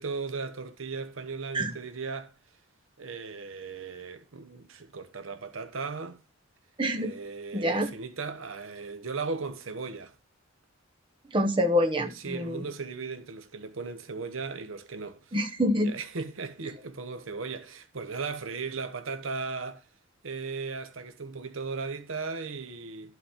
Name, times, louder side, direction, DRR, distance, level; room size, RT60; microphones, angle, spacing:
voice 1, 0.0-2.3 3.0-6.2 6.9-10.1 12.1-15.4 15.7-19.9 20.2-23.1, right 4 dB, 70° right, 0.8 m, -37 dB
voice 2, 6.8-7.1 7.5-7.9 11.3-12.6 15.3-15.9, equal, 25° right, 1.0 m, -26 dB
11.5 x 4.0 x 5.6 m
head